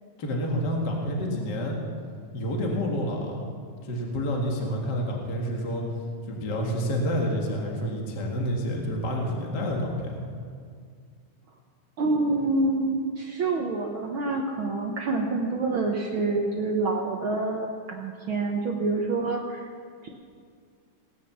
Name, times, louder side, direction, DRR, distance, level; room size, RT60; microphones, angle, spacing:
voice 1, 0.2-1.8 2.3-3.4 3.9-5.8 6.3-10.2, equal, 35° left, -1 dB, 2.0 m, -28 dB
voice 2, 12.0-19.7 20.0-20.1, right 3 dB, 80° right, 1 dB, 1.1 m, -27 dB
19.0 x 9.5 x 7.2 m, 2.1 s
omnidirectional pair, 3.9 m